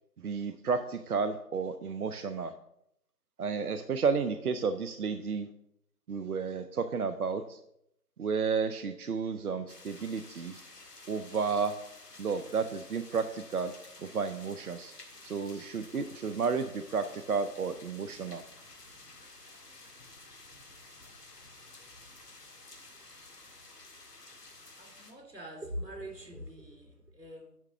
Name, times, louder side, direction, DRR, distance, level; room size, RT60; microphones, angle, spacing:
voice 1, 0.2-2.5 3.4-5.5 6.1-7.6 8.2-10.6 11.1-11.8 12.2-13.7 14.0-14.9 15.2-18.4, right 5 dB, 65° right, 10 dB, 0.6 m, -32 dB
sound 1, 9.7-25.1, left 2 dB, 75° left, 1.8 m, -52 dB
voice 2, 24.8-27.6, equal, 85° right, 1 dB, 3.4 m, -43 dB
10.5 x 3.5 x 5.6 m, 0.76 s
figure-of-eight pair, 155°, 48 cm